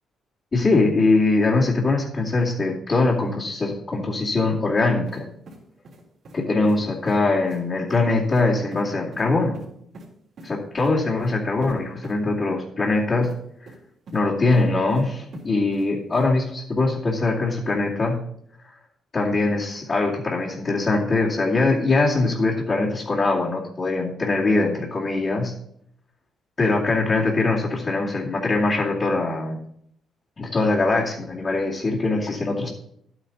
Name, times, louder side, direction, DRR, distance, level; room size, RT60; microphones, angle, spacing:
voice 1, 0.5-5.3 6.3-9.6 10.4-13.3 14.1-18.2 19.1-25.5 26.6-29.6 30.4-32.7, left 3 dB, 40° left, -7 dB, 2.5 m, -22 dB
sound 1, 5.1-5.2 5.5-6.4 6.6-6.8 7.1-7.2 7.5-7.6 7.9-8.0 8.3-8.4 8.7-8.8 9.1-9.2 9.5-10.1 10.4-10.5 10.8-10.9 11.2-11.3 11.6-11.7 12.0-12.1 13.2-13.3 13.7-14.2 14.5-15.0 15.3-15.9 16.1-16.3, right 2 dB, 60° right, 3.4 m, -43 dB
11.5 x 9.1 x 4.1 m, 0.70 s
cardioid pair, 90°, 0 cm